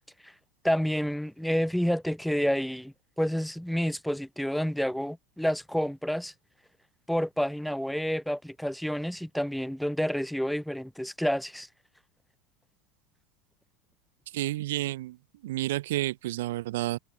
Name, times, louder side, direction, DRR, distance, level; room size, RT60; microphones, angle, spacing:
voice 1, 0.6-6.3 7.1-11.7, equal, ahead, 1.3 m, -29 dB
voice 2, 14.3-15.2 15.4-17.0, right 16 dB, 85° right, 2.0 m, -30 dB
supercardioid pair, 135°, 0 cm